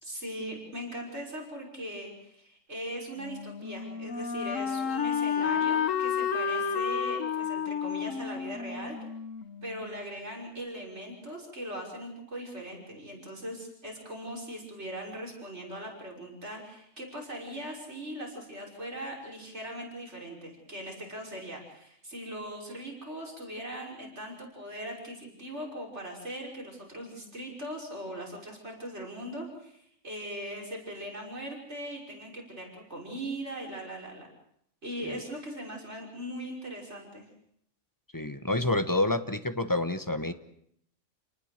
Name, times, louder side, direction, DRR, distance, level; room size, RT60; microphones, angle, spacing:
voice 1, 0.0-9.0 9.6-34.3 34.8-37.3, equal, 60° right, -1 dB, 6.2 m, -40 dB
Wind instrument woodwind instrument, 3.2-10.0, left 7 dB, 85° left, 1.5 m, -31 dB
voice 2, 38.1-40.3, left 2 dB, 15° left, 9 dB, 1.1 m, -28 dB
28.5 x 19.5 x 6.7 m, 0.70 s
omnidirectional pair, 1.3 m